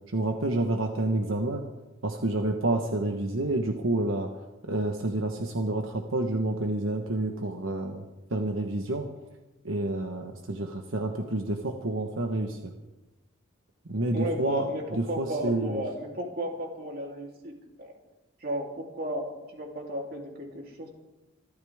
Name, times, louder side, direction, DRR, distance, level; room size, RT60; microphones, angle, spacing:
voice 1, 0.1-1.6 2.0-4.3 4.6-8.0 8.3-9.1 9.6-12.7 13.9-15.8, right 2 dB, 80° right, 3 dB, 1.3 m, -29 dB
voice 2, 14.1-17.5 17.8-18.0 18.4-20.9, equal, 50° right, 0 dB, 3.4 m, -34 dB
26.0 x 13.5 x 3.6 m, 1.0 s
head